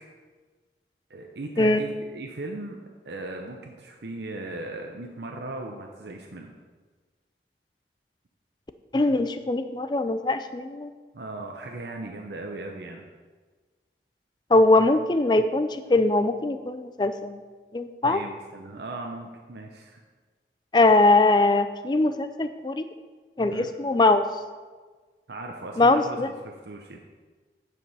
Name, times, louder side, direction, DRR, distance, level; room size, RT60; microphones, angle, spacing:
voice 1, 1.1-6.5 11.1-13.0 18.0-20.0 23.5-23.7 25.3-27.0, right 2 dB, 75° right, 2 dB, 0.8 m, -38 dB
voice 2, 8.9-10.9 14.5-17.4 17.7-18.2 20.7-22.8 23.4-24.2 25.8-26.3, left 2 dB, 25° left, 10 dB, 0.4 m, -21 dB
9.3 x 5.2 x 5.5 m, 1.4 s
head